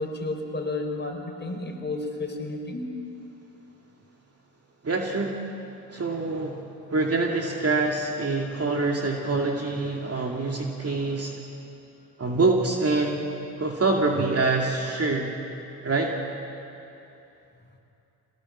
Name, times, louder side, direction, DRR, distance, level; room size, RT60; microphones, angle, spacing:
voice 1, 0.0-2.9, left 2 dB, 20° left, 2 dB, 4.9 m, -32 dB
voice 2, 4.8-5.4 5.9-11.3 12.2-13.2 13.6-15.3 15.8-16.1, right 3 dB, 30° right, 0 dB, 2.5 m, -25 dB
24.5 x 18.5 x 7.4 m, 2.9 s
hypercardioid pair, 55°, 48 cm